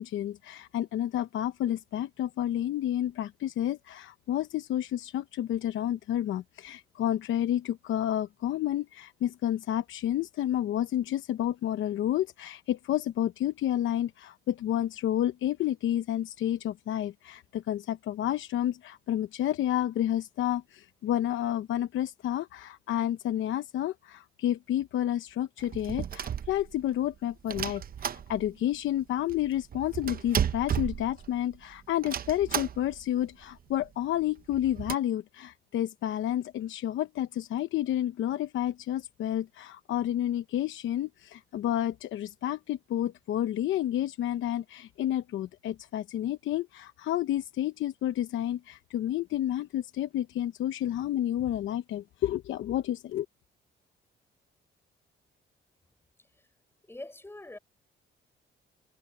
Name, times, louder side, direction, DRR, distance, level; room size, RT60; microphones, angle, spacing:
voice 1, 0.0-53.3, left 12 dB, 75° left, 0.9 m, -30 dB
sound 1, 25.6-27.0 27.5-28.7 29.0-29.1 29.3-31.6 32.0-33.1 33.4-33.5 33.7-33.9 34.4-35.0, right 9 dB, 50° right, 0.8 m, -33 dB
voice 2, 56.9-57.6, left 2 dB, 10° left, 6.1 m, -43 dB
cardioid pair, 90°, 20 cm